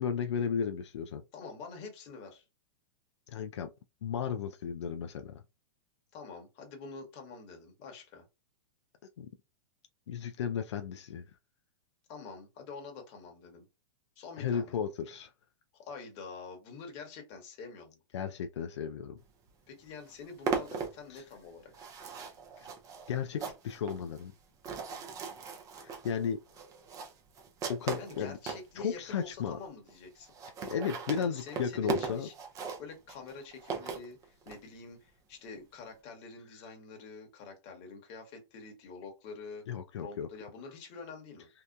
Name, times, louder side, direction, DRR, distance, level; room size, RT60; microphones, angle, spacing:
voice 1, 0.0-1.2 3.3-3.7 4.0-5.4 9.2-9.3 10.1-11.2 14.4-15.3 18.1-19.2 21.1-21.2 22.6-22.7 23.1-24.3 25.8-26.4 27.7-28.4 28.8-29.6 30.7-32.3 39.7-40.3, left 7 dB, 85° left, 0.4 m, -34 dB
voice 2, 1.3-2.4 6.1-8.2 12.1-13.7 14.2-14.8 15.7-18.0 19.7-21.9 27.9-30.3 31.2-32.3 32.8-39.7 40.0-41.5, left 4 dB, 40° left, 1.2 m, -47 dB
sound 1, 19.5-19.6 19.8-28.7 29.3-29.4 29.6-29.7 29.9-30.0 30.2-34.6, right 5 dB, 25° right, 0.5 m, -38 dB
2.8 x 2.1 x 2.3 m
hypercardioid pair, 135°, 14 cm